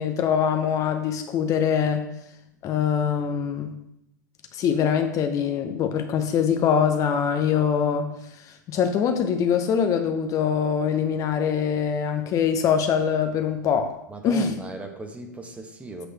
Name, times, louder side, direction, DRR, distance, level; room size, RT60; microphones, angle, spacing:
voice 1, 0.0-2.1 2.6-3.7 4.5-8.1 8.7-13.9 14.2-14.5, left 7 dB, 35° left, 7 dB, 0.7 m, -23 dB
voice 2, 14.1-16.1, right 2 dB, 15° right, 5 dB, 1.1 m, -37 dB
7.9 x 6.2 x 3.3 m, 0.81 s
hypercardioid pair, 100°, 10 cm